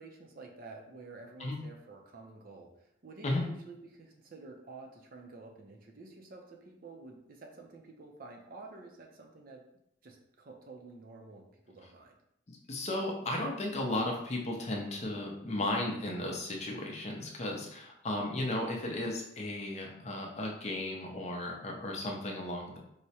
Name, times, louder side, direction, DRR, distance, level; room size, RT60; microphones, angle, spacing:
voice 1, 0.0-9.6 10.0-12.2, right 3 dB, 50° right, 2 dB, 0.5 m, -50 dB
voice 2, 12.5-22.8, left 1 dB, 35° left, 0 dB, 0.5 m, -35 dB
4.7 x 2.1 x 2.8 m, 0.76 s
head